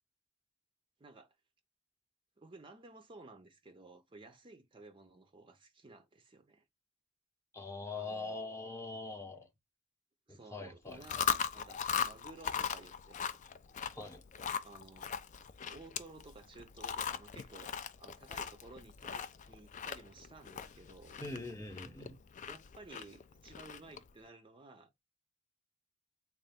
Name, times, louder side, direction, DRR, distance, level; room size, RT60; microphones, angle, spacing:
voice 1, 1.0-1.4 2.4-6.7 7.9-8.4 10.3-13.4 14.6-15.1 15.7-21.2 22.4-24.9, right 3 dB, 25° right, 0.5 m, -55 dB
voice 2, 7.5-9.5 10.3-11.3 13.9-14.2 21.2-22.2, left 3 dB, 15° left, 0.8 m, -43 dB
Chewing mastication, 10.9-24.1, left 8 dB, 35° left, 0.4 m, -39 dB
3.9 x 2.4 x 3.4 m
head